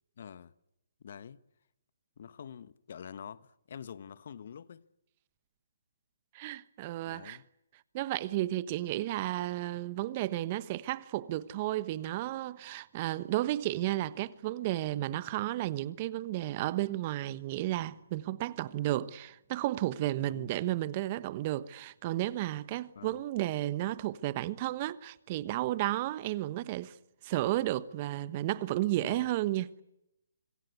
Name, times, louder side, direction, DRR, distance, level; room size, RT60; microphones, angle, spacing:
voice 1, 0.2-0.5 1.0-1.4 2.2-4.9 7.0-7.5 20.3-20.5 22.9-23.2 28.9-29.3, left 7 dB, 55° left, 1.2 m, -46 dB
voice 2, 6.3-7.4 7.9-26.9 27.2-29.8, right 15 dB, 35° right, 1.2 m, -33 dB
26.0 x 23.5 x 8.3 m
hypercardioid pair, 145°, 0 cm